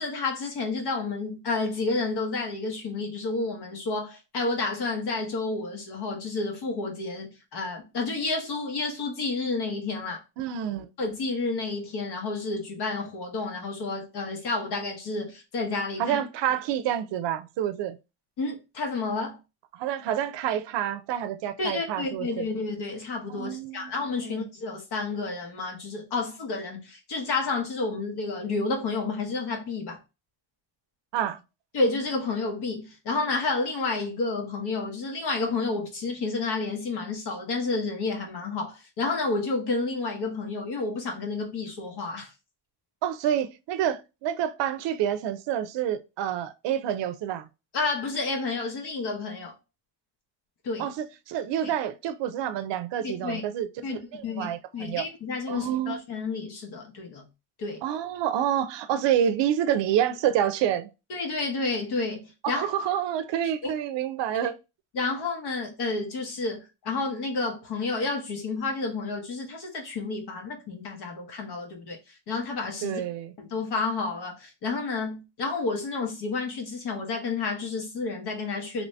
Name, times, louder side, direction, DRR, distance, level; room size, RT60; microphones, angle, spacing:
voice 1, 0.0-10.2 11.0-16.2 18.4-19.4 21.6-30.0 31.7-42.3 47.7-49.5 50.6-50.9 51.6-51.7 53.0-53.4 53.8-54.0 54.2-57.2 57.6-57.8 61.1-62.7 63.6-63.7 64.4-64.5 64.9-73.0 73.4-78.8, left 3 dB, 65° left, 1.2 m, -30 dB
voice 2, 10.4-10.9 16.0-18.0 19.7-22.4 23.4-23.9 24.2-24.5 31.1-31.4 43.0-47.5 50.8-53.7 54.1-55.1 55.5-56.0 57.8-60.9 62.4-64.6 72.8-73.3, right 10 dB, 85° right, 0.5 m, -28 dB
3.0 x 2.7 x 3.2 m
cardioid pair, 115°, 42 cm